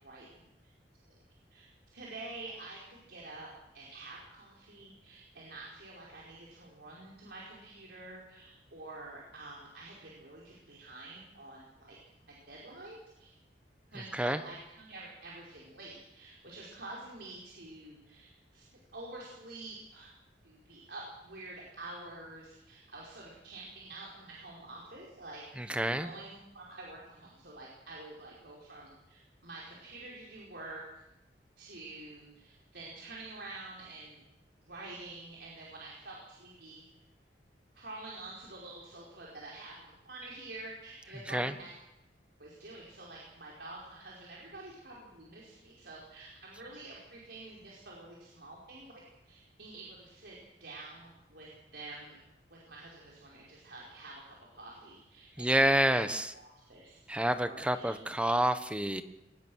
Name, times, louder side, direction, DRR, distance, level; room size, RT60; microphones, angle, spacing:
voice 1, 0.0-0.7 1.5-3.5 3.7-13.3 13.9-18.6 18.9-20.1 20.4-31.0 31.6-34.2 34.6-36.8 37.7-41.7 42.4-50.3 50.6-52.2 52.5-56.0 56.3-57.0 57.4-57.9, right 2 dB, 70° right, -4 dB, 5.0 m, -48 dB
voice 2, 25.6-26.1 41.3-41.5 55.4-56.3 57.1-59.0, right 1 dB, 5° right, 10 dB, 1.2 m, -28 dB
23.0 x 20.0 x 6.4 m, 0.87 s
head